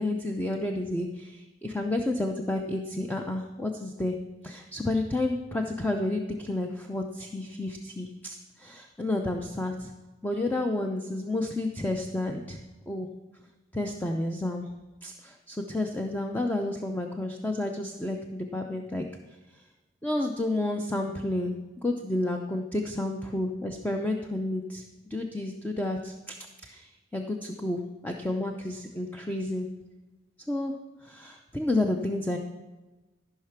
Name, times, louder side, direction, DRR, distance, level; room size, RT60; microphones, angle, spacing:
voice 1, 0.0-4.2 4.4-9.9 10.2-12.6 12.9-13.1 13.7-14.7 15.0-19.0 20.0-24.8 25.1-26.4 26.6-29.7 30.5-30.7 31.0-32.4, left 2 dB, 10° left, 3 dB, 0.6 m, -30 dB
14.0 x 5.8 x 5.9 m, 1.2 s
head